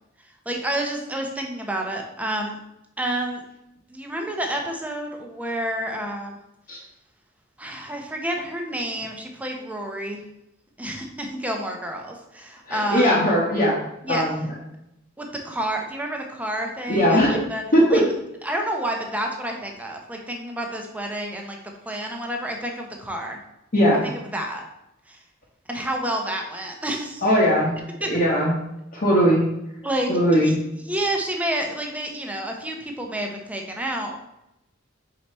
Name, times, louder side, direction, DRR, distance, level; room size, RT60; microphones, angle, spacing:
voice 1, 0.5-2.6 3.0-3.4 3.9-6.4 7.6-10.2 10.8-13.1 14.0-14.2 15.2-17.6 17.9-18.0 18.4-23.4 24.3-24.7 25.1-25.2 25.7-27.2 28.0-28.2 29.8-34.3, right 1 dB, 5° right, 2 dB, 0.8 m, -29 dB
voice 2, 12.7-13.8 14.1-14.5 16.9-17.5 17.7-18.1 23.7-24.0 27.2-27.7 28.1-28.5 28.9-29.5 30.1-30.6, equal, 45° left, -6 dB, 1.1 m, -19 dB
4.9 x 4.7 x 4.3 m, 0.85 s
head